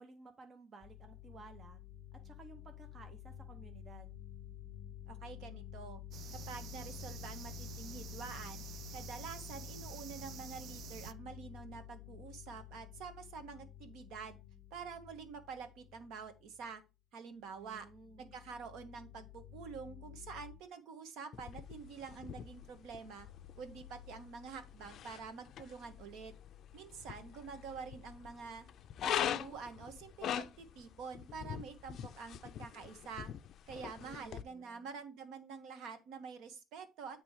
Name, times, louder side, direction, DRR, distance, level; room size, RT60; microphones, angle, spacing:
voice 1, 0.0-1.8 2.1-4.1 17.5-18.4 34.0-34.9, right 4 dB, 30° right, 0.7 m, -56 dB
sound 1, 0.8-16.7 17.4-20.6, left 11 dB, 10° left, 1.0 m, -51 dB
voice 2, 5.1-6.0 6.3-8.6 8.9-14.4 14.7-16.8 17.1-17.9 18.2-23.3 23.6-26.3 26.7-28.7 29.0-33.3 33.7-37.2, right 5 dB, 70° right, 1.1 m, -47 dB
sound 2, 6.1-11.1, right 10 dB, 50° right, 0.3 m, -50 dB
sound 3, 21.3-34.4, left 10 dB, 50° left, 0.4 m, -43 dB
8.5 x 3.1 x 4.7 m
cardioid pair, 160°, 0 cm